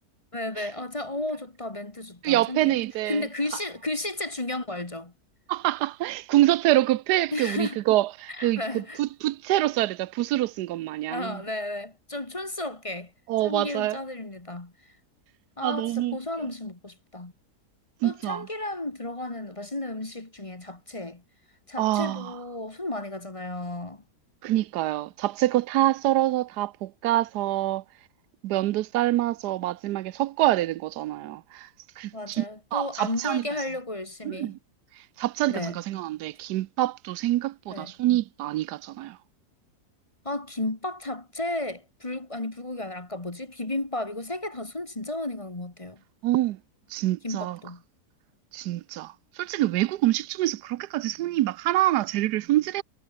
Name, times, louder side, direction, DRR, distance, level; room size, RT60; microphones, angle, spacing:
voice 1, 0.3-2.8 3.1-5.1 7.3-7.8 8.3-9.0 11.1-13.1 13.4-14.9 15.6-17.3 18.0-21.2 21.7-24.0 32.1-34.6 35.5-35.8 37.7-37.9 40.2-46.0 47.2-47.8, left 2 dB, 20° left, 1.7 m, -33 dB
voice 2, 2.2-3.2 5.5-11.4 13.3-14.0 15.6-16.2 18.0-18.5 21.8-22.3 24.4-27.8 28.4-31.7 32.0-32.4 32.7-33.4 34.3-34.6 35.2-39.2 46.2-46.6 46.9-47.6 48.5-52.8, right 15 dB, 90° right, 1.2 m, -26 dB
omnidirectional pair, 1.7 m